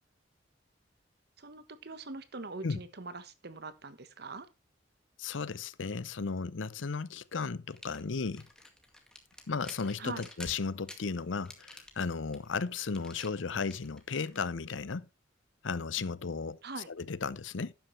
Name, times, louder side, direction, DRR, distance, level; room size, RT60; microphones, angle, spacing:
voice 1, 1.4-4.5 10.0-10.3 16.6-16.9, right 3 dB, 60° right, 1.2 m, -43 dB
voice 2, 5.2-8.5 9.5-15.1 15.6-16.6 17.0-17.7, left 5 dB, 85° left, 0.7 m, -35 dB
sound 1, 7.7-14.5, left 1 dB, 5° left, 2.0 m, -51 dB
12.0 x 9.3 x 3.2 m
head